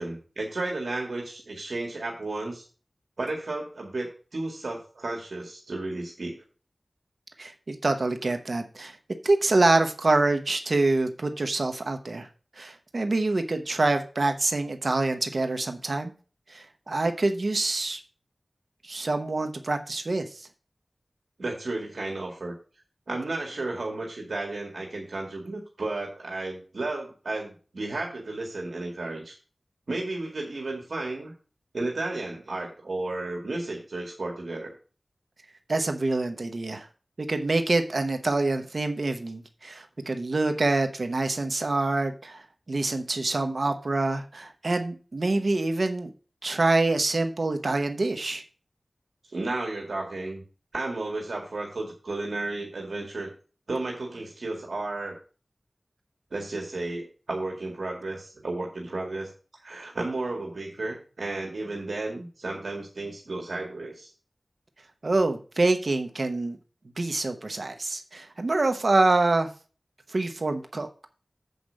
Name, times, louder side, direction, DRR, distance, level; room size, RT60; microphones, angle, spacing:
voice 1, 0.0-2.6 3.2-6.4 21.4-22.5 23.1-29.4 29.9-31.3 31.7-34.7 47.7-47.8 49.3-50.4 50.7-53.3 53.7-55.2 56.3-59.3 59.6-64.1, right 2 dB, 85° right, -1 dB, 2.1 m, -33 dB
voice 2, 7.4-9.0 9.2-12.3 12.6-16.1 16.5-18.0 18.8-20.5 35.7-36.9 37.2-46.1 46.4-48.4 65.0-66.6 67.0-69.5 70.1-71.1, right 2 dB, 65° right, 6 dB, 1.0 m, -26 dB
8.0 x 5.1 x 6.3 m, 0.37 s
wide cardioid pair, 55°, 0 cm